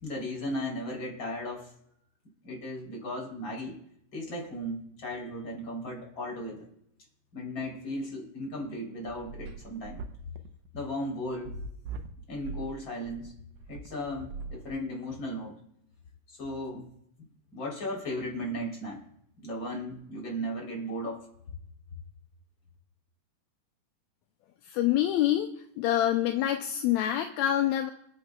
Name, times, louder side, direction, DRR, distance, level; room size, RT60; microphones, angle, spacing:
voice 1, 0.0-1.7 2.4-3.8 4.1-6.7 7.3-10.0 10.7-11.5 12.3-13.3 13.7-15.5 16.3-16.9 17.5-19.0 19.4-21.3, equal, 35° left, -2 dB, 4.2 m, -36 dB
sound 1, 8.6-15.1, right 4 dB, 70° right, 2.0 m, -41 dB
voice 2, 24.6-25.5 25.8-27.9, left 12 dB, 75° left, 5 dB, 1.8 m, -26 dB
27.0 x 9.5 x 2.3 m, 0.75 s
omnidirectional pair, 3.6 m